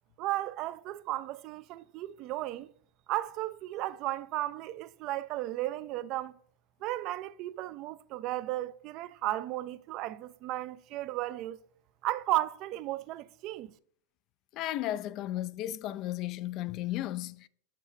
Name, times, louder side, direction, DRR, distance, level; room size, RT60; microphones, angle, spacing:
voice 1, 0.2-2.7 3.1-6.4 6.8-11.6 12.0-13.7, right 15 dB, 50° right, 0.4 m, -34 dB
voice 2, 14.5-17.5, left 14 dB, 50° left, 0.3 m, -34 dB
7.8 x 5.8 x 3.1 m
hypercardioid pair, 100°, 0 cm